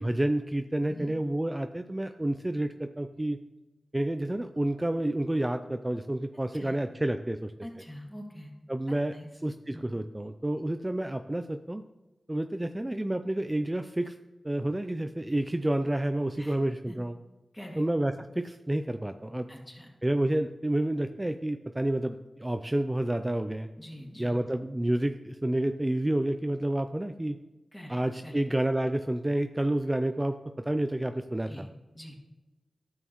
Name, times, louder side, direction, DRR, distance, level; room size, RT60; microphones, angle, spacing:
voice 1, 0.0-3.4 3.9-7.5 8.7-9.2 9.4-11.8 12.3-14.2 14.4-17.1 17.8-19.5 20.0-23.7 24.2-27.4 27.9-31.7, right 1 dB, 20° right, 7 dB, 0.4 m, -29 dB
voice 2, 7.6-8.5 9.1-9.3 9.7-9.8 16.4-16.6 16.9-17.0 17.5-17.9 19.5-19.9 23.8-24.3 27.7-28.3 31.5-31.7 31.9-32.2, equal, 15° left, 0 dB, 2.2 m, -43 dB
11.0 x 6.3 x 3.1 m, 1.1 s
cardioid pair, 40°, 0 cm